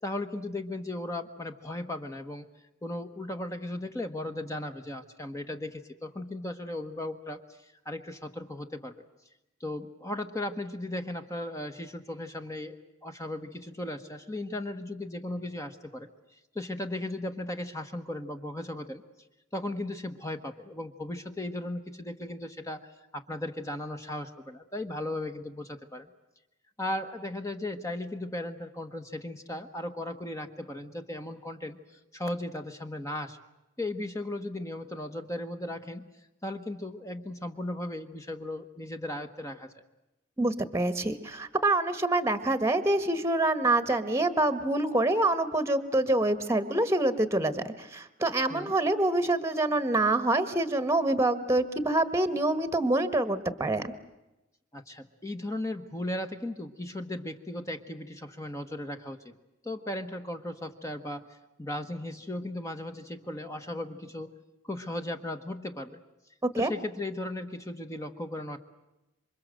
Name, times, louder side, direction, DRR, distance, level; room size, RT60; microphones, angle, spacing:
voice 1, 0.0-2.5 2.8-7.6 7.8-9.0 9.6-16.1 16.5-19.0 19.5-26.1 26.8-31.8 32.1-33.4 33.8-36.1 36.4-39.7 48.5-48.7 54.7-59.2 59.6-64.3 64.6-66.0 66.6-68.6, left 1 dB, 15° left, 6 dB, 1.3 m, -36 dB
voice 2, 40.4-53.9 66.6-66.7, right 2 dB, 15° right, 12 dB, 1.4 m, -26 dB
27.5 x 24.5 x 7.7 m, 0.97 s
head